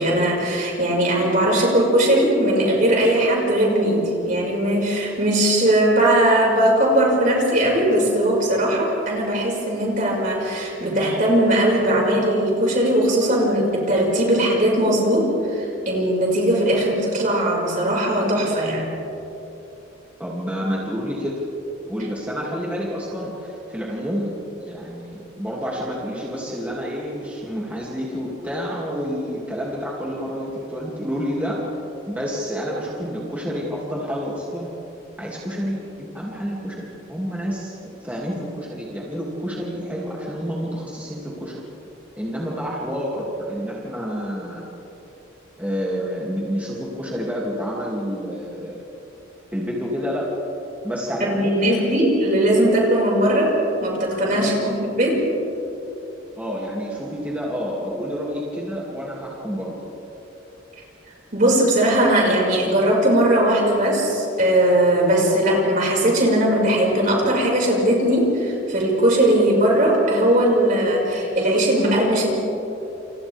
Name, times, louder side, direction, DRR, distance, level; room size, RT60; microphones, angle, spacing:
voice 1, 0.0-18.9 51.2-53.5 53.8-55.2 61.3-72.3, right 1 dB, 40° right, -2 dB, 5.7 m, -19 dB
voice 2, 20.2-21.4 21.9-24.3 24.6-31.6 32.1-34.7 35.2-37.8 38.0-41.6 42.2-44.6 45.6-48.8 49.5-50.3 50.8-52.0 54.3-54.8 56.4-59.7, equal, 10° right, -5 dB, 2.6 m, -29 dB
29.0 x 29.0 x 3.6 m, 3.0 s
head